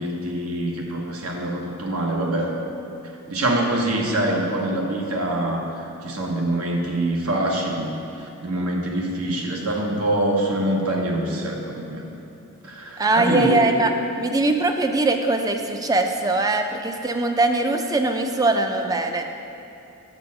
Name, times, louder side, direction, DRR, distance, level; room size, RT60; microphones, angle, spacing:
voice 1, 0.0-2.5 3.3-12.0 12.6-13.6, right 1 dB, 80° right, 0 dB, 1.2 m, -25 dB
voice 2, 13.0-13.9 14.2-19.2, right 2 dB, 15° right, 5 dB, 0.4 m, -21 dB
6.9 x 6.3 x 5.8 m, 2.8 s
head